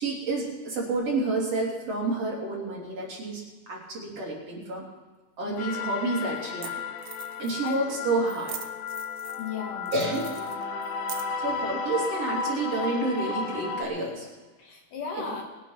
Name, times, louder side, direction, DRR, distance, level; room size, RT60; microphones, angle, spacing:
voice 1, 0.0-4.8 5.4-6.8 7.4-8.6 9.9-10.4 11.4-14.3 15.2-15.3, right 2 dB, 45° right, -3 dB, 3.9 m, -29 dB
voice 2, 5.4-5.8 7.6-8.0 9.4-9.9 14.6-15.4, left 5 dB, 65° left, 1 dB, 3.5 m, -36 dB
sound 1, 5.5-5.6 6.4-6.5 6.6-6.7 7.0-7.8 8.3-9.5 9.9-11.5, right 10 dB, 65° right, 2.2 m, -41 dB
sound 2, 5.6-13.8, left 4 dB, 85° left, 3.0 m, -33 dB
21.5 x 8.3 x 5.9 m, 1.3 s
omnidirectional pair, 4.1 m